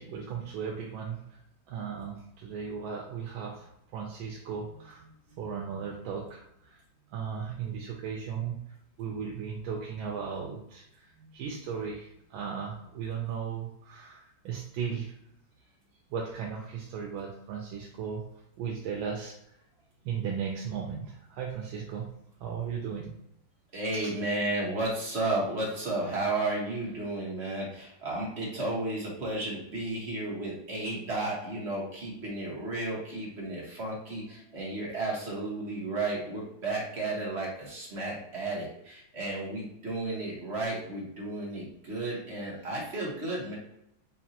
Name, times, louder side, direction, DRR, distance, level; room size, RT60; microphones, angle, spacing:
voice 1, 0.0-1.4 1.7-6.8 7.1-8.6 9.0-15.1 16.1-18.3 18.6-19.4 20.0-22.1 22.4-23.1 23.9-24.1, right 7 dB, 80° right, -1 dB, 1.4 m, -36 dB
voice 2, 23.7-43.6, right 2 dB, 40° right, -4 dB, 1.3 m, -33 dB
5.1 x 2.5 x 2.8 m, 0.78 s
omnidirectional pair, 2.2 m